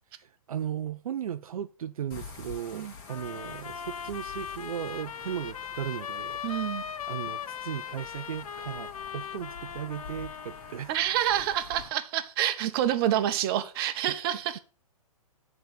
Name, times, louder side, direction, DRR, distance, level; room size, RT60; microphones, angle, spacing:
voice 1, 0.1-6.4 7.1-11.0 13.1-13.2 14.1-14.2, right 10 dB, 70° right, 0.4 m, -36 dB
sound 1, 2.1-11.9, left 4 dB, 40° left, 2.2 m, -47 dB
sound 2, 3.1-10.9, left 8 dB, 70° left, 0.6 m, -39 dB
voice 2, 6.4-6.8 10.9-14.6, right 11 dB, 40° right, 0.9 m, -27 dB
7.8 x 4.0 x 6.6 m
hypercardioid pair, 125°, 19 cm